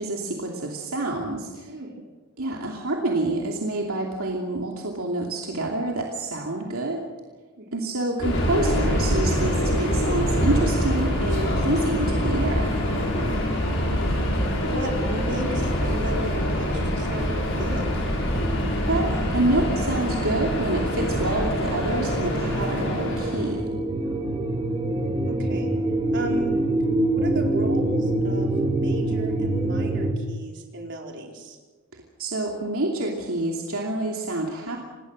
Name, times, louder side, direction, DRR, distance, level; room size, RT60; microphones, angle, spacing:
voice 1, 0.0-1.7 2.4-7.0 7.7-12.7 18.9-23.7 32.2-34.8, right 2 dB, 75° right, 0 dB, 2.7 m, -27 dB
voice 2, 1.6-2.0 7.6-7.9 13.1-13.4 14.0-14.2 14.5-17.9 24.0-24.3 25.3-25.7 26.1-26.5 27.1-31.6, equal, 55° right, 1 dB, 4.4 m, -35 dB
Subway metro underground, 8.2-23.5, equal, 60° left, 6.7 m, -25 dB
sound 1, 18.1-30.1, right 2 dB, 20° right, 1.8 m, -26 dB
27.0 x 19.5 x 6.4 m, 1.3 s
head